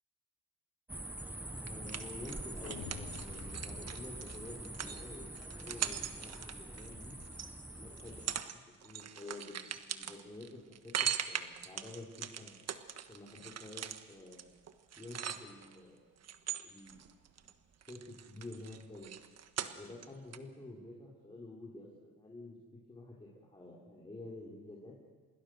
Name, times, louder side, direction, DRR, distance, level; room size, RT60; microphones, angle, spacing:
sound 1, 0.9-8.4, right 1 dB, 5° right, 0.7 m, -45 dB
voice 1, 1.5-5.3 5.6-7.2 7.8-12.5 13.1-14.5 15.0-16.0 16.6-17.0 17.4-17.5 17.9-19.1 19.7-25.0, left 2 dB, 15° left, -2 dB, 4.7 m, -50 dB
sound 2, 1.7-7.5 8.0-8.6 8.8-15.8 16.2-17.5 17.8-20.1 20.3-20.4, right 9 dB, 55° right, 1.4 m, -40 dB
sound 3, 2.6-4.8, left 8 dB, 70° left, 1.9 m, -49 dB
27.5 x 20.5 x 6.6 m, 1.5 s
cardioid pair, 90°, 30 cm